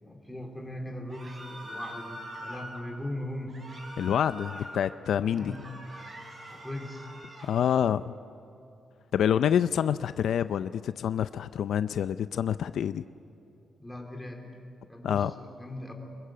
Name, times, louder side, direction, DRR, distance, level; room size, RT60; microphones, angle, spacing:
voice 1, 0.0-3.6 5.3-5.6 6.5-7.1 13.8-14.4 14.9-15.9, left 1 dB, 5° left, 2 dB, 3.5 m, -39 dB
sound 1, 1.1-2.8 3.5-4.8 5.2-7.5, equal, 30° right, 4.9 m, -43 dB
voice 2, 4.0-5.5 7.4-8.2 9.1-13.0 15.0-15.3, left 9 dB, 75° left, 12 dB, 0.5 m, -27 dB
25.5 x 22.0 x 7.6 m, 2.8 s
wide cardioid pair, 155°, 0 cm